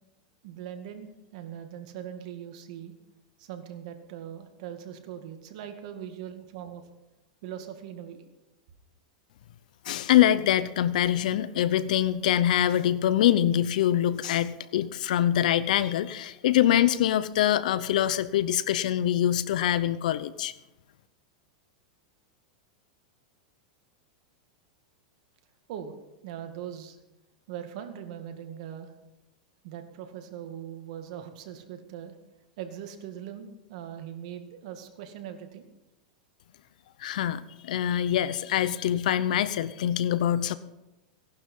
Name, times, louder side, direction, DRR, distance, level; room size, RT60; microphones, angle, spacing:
voice 1, 0.4-2.9 3.4-6.8 7.4-8.2 25.7-25.9 26.2-27.0 27.5-28.9 29.6-32.1 32.6-35.7, right 9 dB, 60° right, 6 dB, 2.2 m, -40 dB
voice 2, 9.8-20.5 37.0-40.5, left 11 dB, 75° left, 16 dB, 0.8 m, -24 dB
17.5 x 11.5 x 5.6 m, 0.96 s
supercardioid pair, 130°, 4 cm